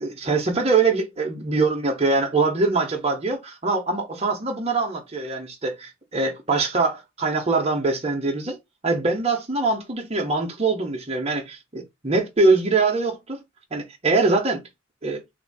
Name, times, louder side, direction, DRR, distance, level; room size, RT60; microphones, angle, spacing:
voice 1, 0.0-8.6 8.8-13.4 13.7-14.6 15.0-15.2, right 3 dB, 30° right, 0.9 m, -23 dB
3.6 x 2.7 x 4.1 m
head